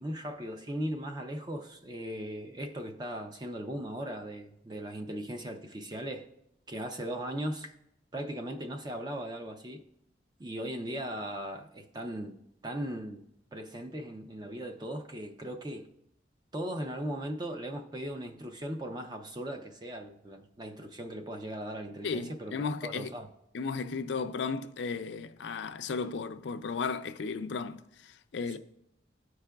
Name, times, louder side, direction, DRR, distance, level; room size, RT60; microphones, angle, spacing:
voice 1, 0.0-6.3 6.7-7.7 8.1-9.8 10.4-12.3 12.6-13.2 13.5-15.9 16.5-23.3 28.5-28.6, right 1 dB, 25° right, 0.5 m, -38 dB
voice 2, 22.0-23.1 23.5-28.6, left 5 dB, 75° left, 0.4 m, -35 dB
13.5 x 4.8 x 2.3 m
head